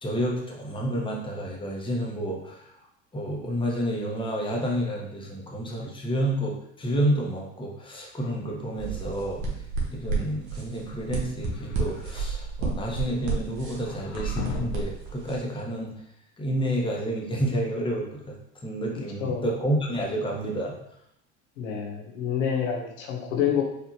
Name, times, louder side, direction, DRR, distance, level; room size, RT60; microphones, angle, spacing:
voice 1, 0.0-2.7 3.1-9.4 9.9-15.9 16.4-18.4 18.6-20.7, right 1 dB, 15° left, -1 dB, 1.1 m, -29 dB
sound 1, 8.7-15.4, right 4 dB, 65° right, 1.3 m, -32 dB
sound 2, 11.4-12.3 13.7-15.0, left 5 dB, 50° left, 0.8 m, -37 dB
voice 2, 21.6-23.6, left 8 dB, 90° left, 0 dB, 0.9 m, -27 dB
4.8 x 2.7 x 2.8 m, 0.77 s
hypercardioid pair, 90°, 36 cm